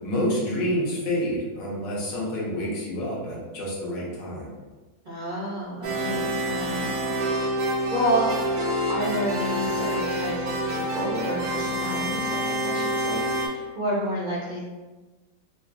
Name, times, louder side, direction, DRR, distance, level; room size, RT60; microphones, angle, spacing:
voice 1, 0.0-4.5, equal, 75° left, -5 dB, 1.5 m, -28 dB
voice 2, 5.0-6.9 7.2-8.3 8.9-14.6, right 1 dB, 70° right, -8 dB, 0.4 m, -30 dB
sound 1, 5.8-13.5, equal, 85° right, 1.4 m, -27 dB
4.2 x 2.2 x 2.4 m, 1.2 s
omnidirectional pair, 2.0 m